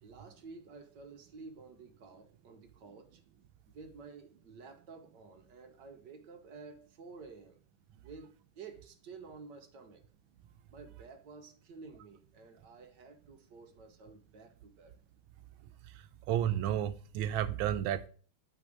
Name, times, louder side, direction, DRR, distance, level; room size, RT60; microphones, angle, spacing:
voice 1, 0.0-3.2 3.7-7.6 7.9-10.0 10.7-15.0, right 4 dB, 65° right, 1.5 m, -52 dB
voice 2, 16.3-18.1, right 11 dB, 85° right, 1.4 m, -31 dB
8.9 x 3.5 x 6.4 m
omnidirectional pair, 2.2 m